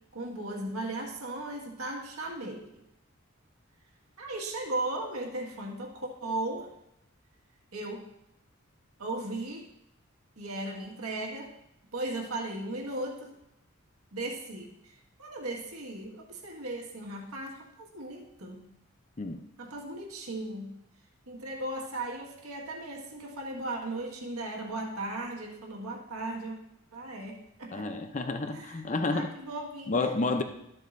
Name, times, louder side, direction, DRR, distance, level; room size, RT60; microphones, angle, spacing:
voice 1, 0.1-2.8 4.2-6.7 7.7-8.1 9.0-9.7 10.4-11.5 11.9-13.3 14.1-18.7 19.6-20.7 21.3-26.6 26.9-27.9 28.5-28.8 29.1-30.1, right 2 dB, 90° right, 0 dB, 1.8 m, -37 dB
voice 2, 27.7-29.3 29.9-30.4, left 3 dB, 35° left, 6 dB, 0.6 m, -30 dB
13.0 x 7.7 x 2.6 m, 0.82 s
head